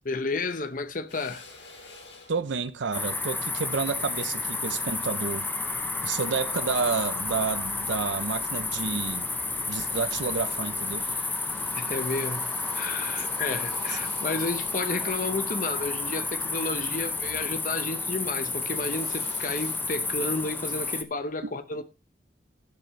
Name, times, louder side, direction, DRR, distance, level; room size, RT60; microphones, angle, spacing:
voice 1, 0.0-1.4 11.7-12.5 12.7-21.8, left 3 dB, 45° left, 0.9 m, -32 dB
Drill, 1.1-5.6 6.2-7.4 7.8-8.7 9.1-9.2 9.5-10.5 10.7-17.4 17.7-20.6, left 3 dB, 75° left, 7.4 m, -51 dB
voice 2, 2.3-5.5 6.0-9.3 9.7-11.1 13.2-13.3 13.9-14.0 21.4-21.6, right 5 dB, 75° right, 0.6 m, -30 dB
sound 1, 2.9-21.0, left 3 dB, 10° left, 0.9 m, -31 dB
sound 2, 5.7-17.7, right 2 dB, 30° right, 1.7 m, -52 dB
12.0 x 11.5 x 3.2 m
head